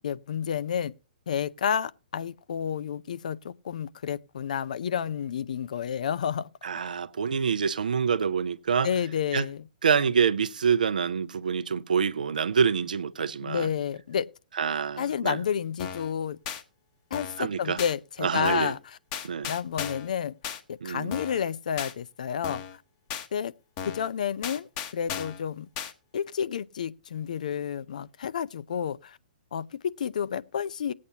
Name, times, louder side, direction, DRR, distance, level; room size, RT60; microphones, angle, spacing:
voice 1, 0.0-0.9 1.3-6.5 8.8-9.6 13.4-14.3 15.0-16.4 17.1-19.0 19.4-20.3 20.7-22.6 23.3-23.5 23.9-25.7 26.1-29.2 29.5-30.9, left 8 dB, 60° left, 0.6 m, -30 dB
voice 2, 6.6-8.9 9.3-9.4 9.8-13.7 14.6-15.4 17.4-17.8 18.2-18.7 19.2-19.5 20.8-21.1, right 6 dB, 65° right, 0.7 m, -26 dB
sound 1, 15.8-16.1 16.5-16.6 17.1-17.4 17.8-17.9 18.4-18.8 19.1-20.1 20.4-20.6 21.1-21.4 21.8-21.9 22.4-22.8 23.1-23.3 23.8-24.1 24.4-25.4 25.8-25.9, left 8 dB, 35° left, 1.2 m, -35 dB
19.0 x 8.5 x 2.8 m
figure-of-eight pair, 120°, 5 cm